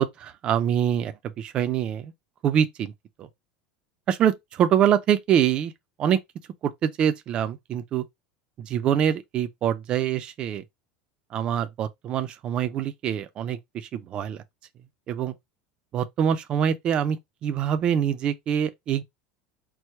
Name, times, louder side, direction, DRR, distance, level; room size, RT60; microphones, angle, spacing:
voice 1, 0.0-2.1 2.4-2.9 3.2-3.3 4.1-5.7 6.0-6.2 6.6-8.0 8.6-10.6 11.3-13.6 13.9-14.4 15.1-15.3 15.9-19.0, right 9 dB, 25° right, 0.4 m, -24 dB
4.6 x 2.1 x 4.4 m
supercardioid pair, 175°, 4 cm